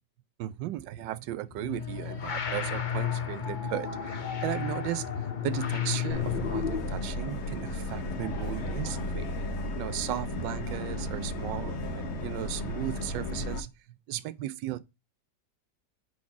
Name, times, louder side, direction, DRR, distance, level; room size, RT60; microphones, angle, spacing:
voice 1, 0.4-9.3 9.7-14.8, right 14 dB, 85° right, 1.3 m, -36 dB
sound 1, 1.5-7.0, left 8 dB, 80° left, 0.4 m, -32 dB
Subway metro underground, 6.1-13.6, left 1 dB, 45° left, 1.0 m, -34 dB
4.8 x 4.2 x 5.8 m
omnidirectional pair, 1.9 m